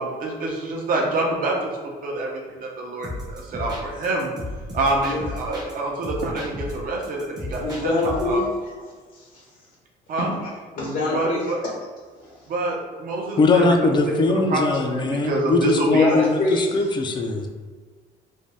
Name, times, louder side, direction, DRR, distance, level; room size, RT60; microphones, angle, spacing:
voice 1, 0.0-1.7 2.0-4.3 4.7-8.4 10.1-10.3 11.1-11.6 12.5-13.7 14.0-14.1 14.5-16.3, right 2 dB, 55° right, -1 dB, 0.7 m, -26 dB
sound 1, 3.0-5.7 6.0-8.4, left 1 dB, 25° right, 0.7 m, -34 dB
voice 2, 7.6-8.4 9.2-9.3 10.4-11.7 16.0-16.7, left 2 dB, 55° left, -3 dB, 0.7 m, -24 dB
voice 3, 13.4-17.5, left 3 dB, 25° left, 3 dB, 0.4 m, -20 dB
2.6 x 2.2 x 3.2 m, 1.5 s
cardioid pair, 110°, 17 cm